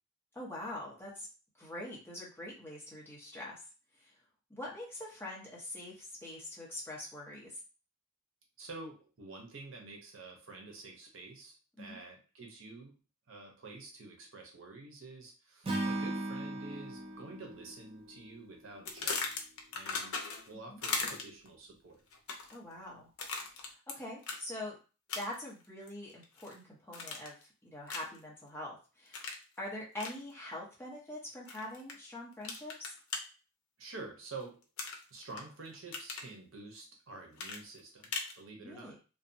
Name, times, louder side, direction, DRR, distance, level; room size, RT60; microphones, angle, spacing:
voice 1, 0.3-1.3 1.6-3.6 4.0-4.1 4.5-7.6 11.8-12.0 20.7-20.8 22.5-23.1 23.5-24.7 25.1-32.9 38.6-39.0, left 1 dB, 10° left, -5 dB, 0.8 m, -44 dB
voice 2, 8.6-12.9 13.3-19.4 19.7-20.2 20.5-22.0 33.8-34.6 35.1-39.0, right 3 dB, 65° right, 1 dB, 0.7 m, -48 dB
Acoustic guitar / Strum, 15.6-18.9, right 2 dB, 25° right, 0.4 m, -38 dB
sound 1, 18.9-20.5 20.8-21.5 22.1-22.6 23.2-23.9 24.2-24.4 25.1-25.5 25.9-26.5 26.9-27.4 27.9-28.2 29.1-29.4 30.0-30.2 31.5-31.9 32.4-33.2 34.8-35.4 35.7-36.3 37.4-38.4, left 4 dB, 80° left, 0.5 m, -38 dB
2.6 x 2.1 x 2.6 m, 0.34 s
head